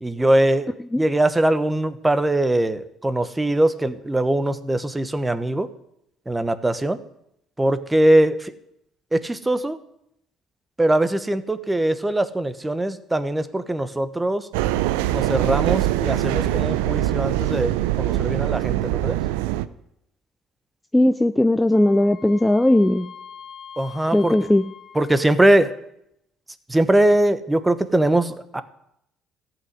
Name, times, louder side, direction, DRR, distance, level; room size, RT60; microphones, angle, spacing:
voice 1, 0.0-5.7 6.3-7.0 7.6-8.5 9.1-9.8 10.8-14.5 15.1-17.7 18.0-19.2 23.8-24.3 24.9-25.7 26.7-28.6, right 1 dB, 15° right, 12 dB, 1.1 m, -21 dB
sound 1, 14.5-19.7, right 15 dB, 90° right, 0.5 m, -23 dB
voice 2, 20.9-23.1 24.1-24.6, left 1 dB, 10° left, 10 dB, 0.5 m, -18 dB
Wind instrument woodwind instrument, 21.7-25.6, left 8 dB, 40° left, 3.3 m, -44 dB
14.0 x 6.1 x 9.6 m, 0.78 s
supercardioid pair, 75°, 0 cm